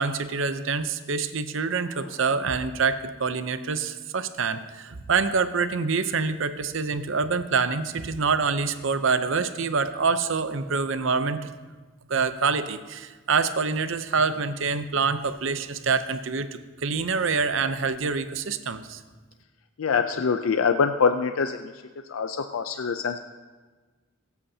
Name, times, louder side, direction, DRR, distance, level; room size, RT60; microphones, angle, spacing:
voice 1, 0.0-11.5 12.1-19.0, right 5 dB, 65° right, 11 dB, 0.6 m, -26 dB
voice 2, 19.8-21.7 22.1-23.2, left 5 dB, 80° left, 8 dB, 0.5 m, -24 dB
22.0 x 8.3 x 2.8 m, 1.3 s
head